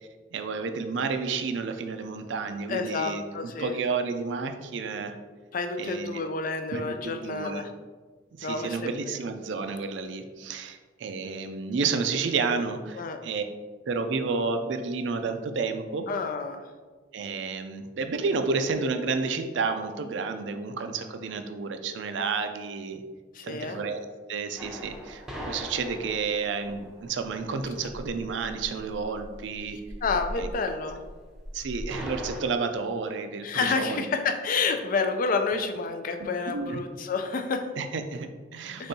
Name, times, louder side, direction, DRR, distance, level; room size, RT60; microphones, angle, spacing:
voice 1, 0.3-5.2 5.8-6.2 6.7-7.7 8.4-13.4 13.9-16.1 17.1-23.0 23.4-29.8 30.4-30.5 31.5-34.0 36.5-36.8 37.8-38.9, right 4 dB, 70° right, 7 dB, 0.4 m, -31 dB
voice 2, 2.7-3.7 5.5-7.7 8.4-9.2 12.9-13.2 16.1-16.7 23.3-23.8 30.0-31.0 33.4-37.7 38.8-38.9, left 4 dB, 45° left, 6 dB, 0.4 m, -29 dB
sound 1, 24.6-32.4, equal, 5° right, 0.7 m, -40 dB
5.2 x 3.4 x 2.7 m, 1.4 s
head